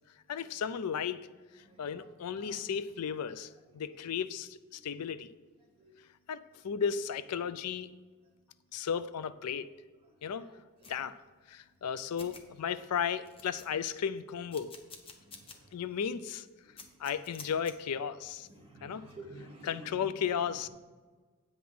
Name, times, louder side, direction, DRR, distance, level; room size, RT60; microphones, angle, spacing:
voice 1, 0.3-1.2 1.8-5.3 6.3-7.9 8.7-9.7 10.2-10.5 10.9-11.2 11.5-14.7 15.7-16.5 17.0-18.5 18.8-19.0 19.6-20.7, left 7 dB, 85° left, 15 dB, 0.4 m, -34 dB
sound 1, 10.8-11.0 11.8-11.9 12.2-12.4 12.9-13.0 13.2-14.0 14.5-15.6 16.0-16.1 16.8-17.7, left 4 dB, 25° left, 0.8 m, -49 dB
voice 2, 18.5-20.0, right 2 dB, 25° right, -3 dB, 2.1 m, -50 dB
8.7 x 5.5 x 6.0 m, 1.4 s
head